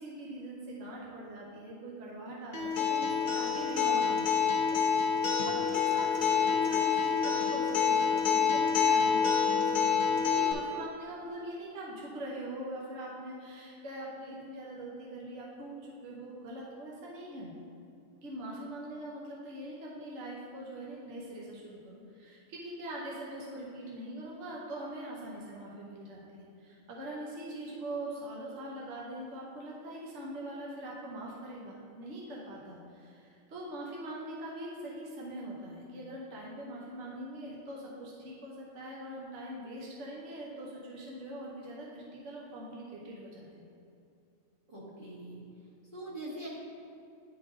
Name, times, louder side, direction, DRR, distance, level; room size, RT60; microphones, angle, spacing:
voice 1, 0.0-17.5 18.2-43.6, right 1 dB, 65° right, -4 dB, 1.2 m, -42 dB
Acoustic guitar, 2.5-10.5, left 6 dB, 45° left, 0.9 m, -27 dB
voice 2, 44.7-45.4 45.9-46.5, right 1 dB, 40° right, -8 dB, 1.9 m, -42 dB
10.0 x 3.8 x 3.7 m, 2.6 s
omnidirectional pair, 1.3 m